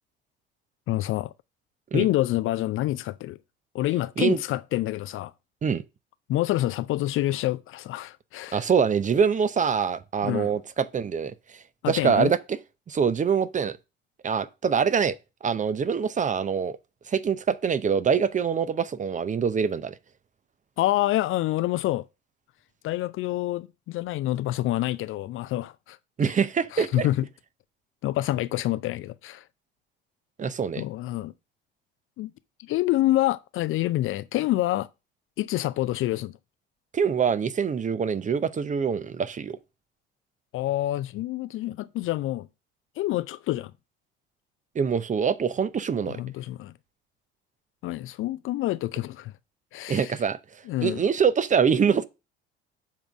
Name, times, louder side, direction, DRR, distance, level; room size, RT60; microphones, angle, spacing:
voice 1, 0.9-1.3 1.9-3.4 3.7-5.3 6.3-8.6 10.2-10.5 11.8-12.3 20.8-22.1 22.8-26.0 26.7-27.2 28.0-29.4 30.8-31.3 32.2-32.3 32.6-34.9 35.4-36.4 40.5-42.5 43.0-43.7 46.1-46.7 47.8-49.3 49.7-50.2 50.7-51.0, left 15 dB, 45° left, 0.5 m, -27 dB
voice 2, 8.5-12.6 12.9-13.8 14.2-15.2 15.4-16.8 17.1-20.0 26.2-27.1 30.4-30.8 36.9-39.6 44.7-46.2 49.9-50.4 50.8-52.1, right 6 dB, 25° right, 0.6 m, -24 dB
7.2 x 3.8 x 6.1 m
figure-of-eight pair, 60°, 30 cm